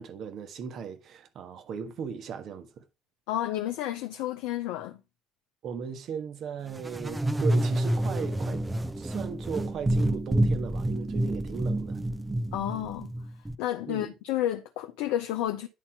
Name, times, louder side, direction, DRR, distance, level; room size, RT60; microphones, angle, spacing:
voice 1, 0.0-2.8 5.6-8.6 9.0-12.0 13.9-14.1, right 6 dB, 55° right, 1.5 m, -37 dB
voice 2, 3.3-5.0 12.5-13.1 13.6-15.7, left 12 dB, 65° left, 0.6 m, -31 dB
sound 1, 6.8-13.6, right 1 dB, 15° right, 0.7 m, -28 dB
10.0 x 4.3 x 4.6 m
figure-of-eight pair, 55°, 0 cm